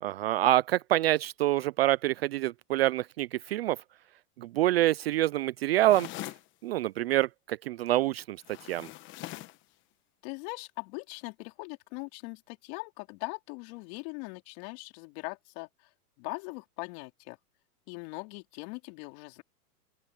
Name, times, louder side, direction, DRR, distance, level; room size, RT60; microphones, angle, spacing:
voice 1, 0.0-3.8 4.4-6.1 6.6-8.9, right 15 dB, 45° right, 0.4 m, -26 dB
sound 1, 5.9-6.5 8.4-9.6, left 17 dB, 25° left, 1.0 m, -42 dB
voice 2, 10.2-15.9 16.2-17.4 17.9-19.4, left 29 dB, 40° left, 4.1 m, -41 dB
open air
hypercardioid pair, 145°, 47 cm